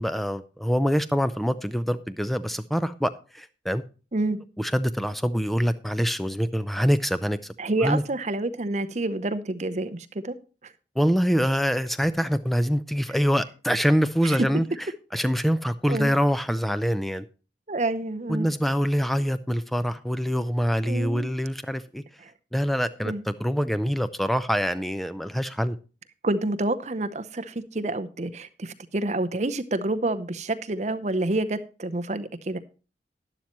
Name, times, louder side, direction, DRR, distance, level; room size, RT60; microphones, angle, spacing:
voice 1, 0.0-3.8 4.6-7.5 7.8-8.0 11.0-14.6 15.1-17.3 18.3-22.0 22.5-25.8, equal, ahead, 0.5 m, -25 dB
voice 2, 7.6-10.4 10.6-10.7 14.2-14.4 15.9-16.1 17.7-18.5 20.8-21.3 22.2-22.3 23.0-23.2 26.2-32.6, right 2 dB, 40° right, 0.7 m, -28 dB
11.5 x 11.0 x 3.0 m
head